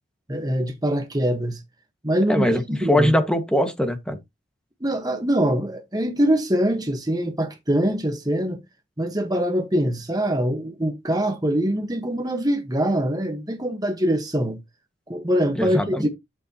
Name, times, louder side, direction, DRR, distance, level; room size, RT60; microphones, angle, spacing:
voice 1, 0.3-1.6 2.0-3.1 4.8-8.6 9.0-14.6 15.1-16.1, equal, 20° right, 1.3 m, -23 dB
voice 2, 2.3-4.2 15.6-16.1, equal, 5° left, 1.7 m, -21 dB
11.5 x 6.9 x 2.9 m
head